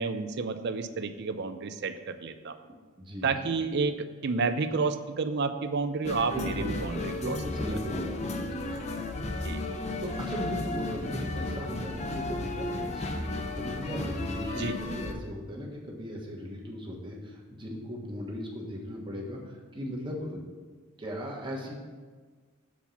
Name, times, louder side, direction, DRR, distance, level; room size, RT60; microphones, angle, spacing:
voice 1, 0.0-2.6 3.2-7.4 9.4-9.6 14.6-14.8, right 4 dB, 55° right, 10 dB, 0.5 m, -30 dB
voice 2, 3.0-3.5 6.3-6.7 7.1-8.9 10.0-20.4 21.0-21.8, equal, 25° right, -2 dB, 1.3 m, -37 dB
sound 1, 6.0-15.1, left 2 dB, 35° left, 0.6 m, -34 dB
7.3 x 4.5 x 7.0 m, 1.5 s
head